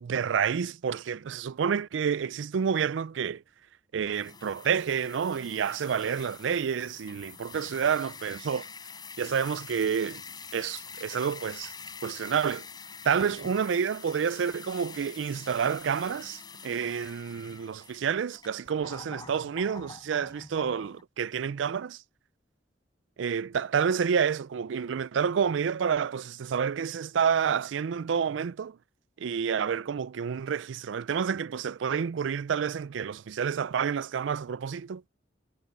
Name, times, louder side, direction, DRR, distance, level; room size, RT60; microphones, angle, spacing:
voice 1, 0.0-3.4 3.9-8.7 9.2-10.2 10.5-11.7 12.0-12.7 13.0-22.0 23.2-28.8 29.2-35.1, right 7 dB, 90° right, 0.4 m, -29 dB
sound 1, 4.0-21.0, left 5 dB, 25° left, 4.3 m, -46 dB
head